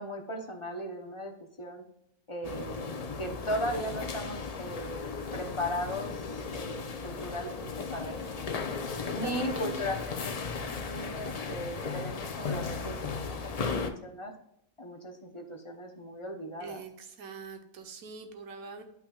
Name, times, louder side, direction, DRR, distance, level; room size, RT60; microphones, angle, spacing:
voice 1, 0.0-1.3 1.6-1.8 2.3-2.9 3.2-5.0 5.3-8.7 9.1-10.3 10.7-14.3 14.8-16.8, equal, 30° left, 3 dB, 0.6 m, -37 dB
sound 1, 2.4-13.9, left 5 dB, 70° left, 0.3 m, -36 dB
voice 2, 8.7-9.8 16.6-18.8, right 4 dB, 70° right, 5 dB, 1.4 m, -43 dB
10.5 x 5.9 x 2.3 m, 0.80 s
omnidirectional pair, 1.6 m